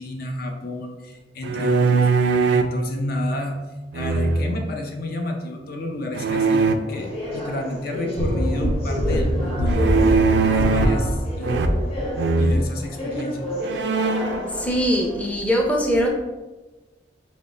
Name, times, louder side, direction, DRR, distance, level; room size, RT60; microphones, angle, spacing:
voice 1, 0.0-3.6 3.9-9.8 10.4-11.7 12.4-13.5, left 1 dB, 60° left, 3 dB, 0.6 m, -30 dB
sound 1, 1.4-2.8 3.9-4.7 6.1-6.8 9.7-11.1 11.4-11.9 12.2-12.6 13.2-13.3 13.6-14.4, right 4 dB, 80° right, 0.3 m, -21 dB
sound 2, 6.9-15.3, left 1 dB, 35° left, 1.2 m, -31 dB
sound 3, 8.2-12.2 12.5-12.6, equal, 80° left, 1.1 m, -24 dB
voice 2, 14.5-16.1, equal, 10° left, -1 dB, 0.5 m, -21 dB
3.5 x 3.0 x 4.0 m, 1.1 s
head